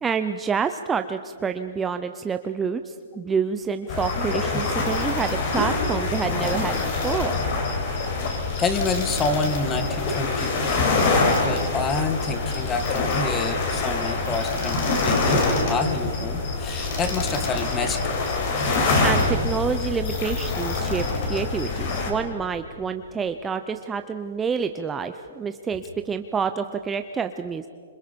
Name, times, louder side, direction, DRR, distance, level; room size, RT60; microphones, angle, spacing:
voice 1, 0.0-7.4 19.0-27.7, right 6 dB, 10° right, 8 dB, 0.6 m, -28 dB
sound 1, 3.9-22.1, left 3 dB, 45° left, 4.6 m, -25 dB
voice 2, 8.6-18.1, left 4 dB, 15° left, 9 dB, 1.5 m, -28 dB
27.0 x 26.5 x 5.2 m, 2.3 s
hypercardioid pair, 155°, 0 cm